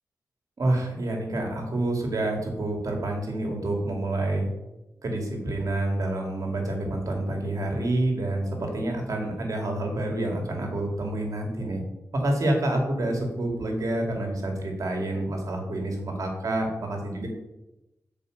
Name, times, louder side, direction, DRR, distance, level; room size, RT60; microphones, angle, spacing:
voice 1, 0.6-4.5 5.0-11.8 12.1-17.3, right 1 dB, 65° right, 1 dB, 2.4 m, -28 dB
7.0 x 5.0 x 6.5 m, 0.94 s
cardioid pair, 55°, 6 cm